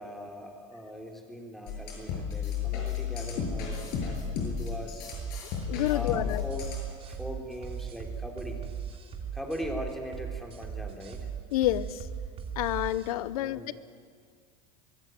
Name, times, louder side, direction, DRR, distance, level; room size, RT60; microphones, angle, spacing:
voice 1, 0.0-5.1 5.9-6.7 7.1-8.7 9.3-11.3 13.4-13.7, equal, ahead, 1 dB, 3.4 m, -40 dB
sound 1, 1.7-6.9, left 6 dB, 60° left, 6.6 m, -33 dB
sound 2, 5.1-13.1, right 7 dB, 30° right, 3.0 m, -38 dB
voice 2, 5.7-6.4 11.5-12.1 12.6-13.7, left 14 dB, 80° left, 17 dB, 0.8 m, -29 dB
23.5 x 14.5 x 9.3 m, 2.1 s
supercardioid pair, 110°, 18 cm